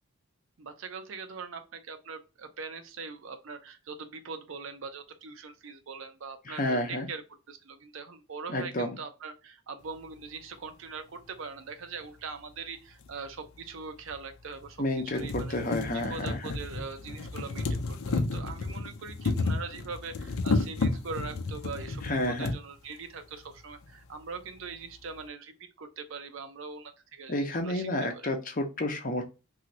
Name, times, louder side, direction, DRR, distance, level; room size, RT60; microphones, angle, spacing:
voice 1, 0.6-7.2 7.5-15.6 15.9-28.3, right 4 dB, 65° right, 0.6 m, -42 dB
voice 2, 6.5-7.1 8.5-9.0 14.8-16.4 22.0-22.5 27.3-29.2, left 1 dB, 40° left, 0.7 m, -30 dB
sound 1, 13.0-13.1 14.1-14.2 14.6-14.7 15.0-22.6 23.5-23.6 23.8-23.9, left 3 dB, 80° left, 0.6 m, -32 dB
3.1 x 2.7 x 2.7 m
head